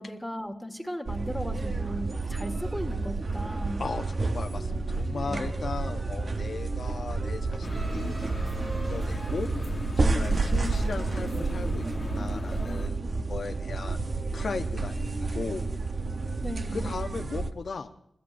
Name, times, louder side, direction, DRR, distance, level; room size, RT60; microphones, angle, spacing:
voice 1, 0.0-3.8 5.2-5.5 10.0-10.5 16.4-16.9, equal, ahead, 4 dB, 1.7 m, -37 dB
sound 1, 1.1-17.5, right 3 dB, 45° right, 0.8 m, -30 dB
voice 2, 3.8-9.5 10.0-14.0 14.3-15.7 16.7-17.9, left 4 dB, 60° left, 6 dB, 0.8 m, -37 dB
sound 2, 7.6-12.9, left 3 dB, 45° left, 1.1 m, -38 dB
28.5 x 14.0 x 2.6 m, 0.76 s
cardioid pair, 70°, 0 cm